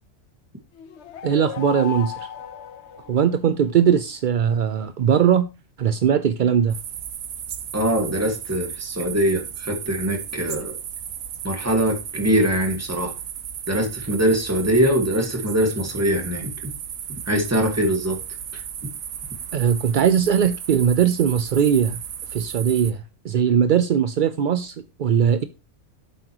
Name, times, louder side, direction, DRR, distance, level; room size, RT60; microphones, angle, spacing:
sound 1, 0.8-3.7, left 9 dB, 60° left, 1.0 m, -35 dB
voice 1, 1.2-2.3 3.1-5.5 5.8-6.8 19.5-22.0 22.3-25.4, right 8 dB, 65° right, 12 dB, 0.5 m, -20 dB
sound 2, 6.7-22.9, right 9 dB, 85° right, 1.3 m, -35 dB
voice 2, 7.7-10.8 11.4-13.1 13.7-16.7 17.3-18.2 18.5-18.6, equal, 10° right, 4 dB, 1.7 m, -22 dB
9.2 x 7.7 x 2.9 m, 0.29 s
omnidirectional pair, 1.4 m